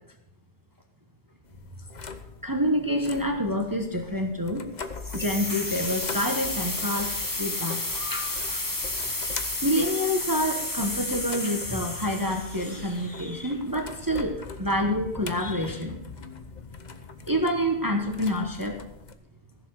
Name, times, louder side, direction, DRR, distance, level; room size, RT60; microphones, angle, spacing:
sound 1, 1.4-19.1, left 5 dB, 40° left, 0.9 m, -42 dB
voice 1, 2.4-4.6 5.1-7.1 7.4-7.8 8.1-8.6 9.6-16.0 17.3-18.8, equal, 20° right, 4 dB, 1.1 m, -27 dB
sound 2, 5.0-13.8, left 2 dB, 20° left, 1.1 m, -32 dB
15.5 x 7.2 x 6.4 m, 0.85 s
omnidirectional pair, 1.2 m